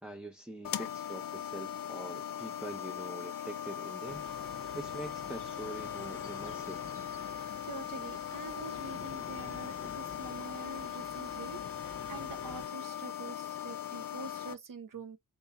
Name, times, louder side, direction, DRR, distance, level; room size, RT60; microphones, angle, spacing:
voice 1, 0.0-4.3 4.7-6.8, right 2 dB, 5° right, 0.6 m, -44 dB
sound 1, 0.6-14.5, left 9 dB, 75° left, 0.5 m, -40 dB
dawn at the sea, 4.0-12.7, left 5 dB, 40° left, 0.7 m, -48 dB
voice 2, 7.2-15.2, right 4 dB, 70° right, 0.8 m, -46 dB
4.6 x 2.8 x 2.3 m
cardioid pair, 55°, 34 cm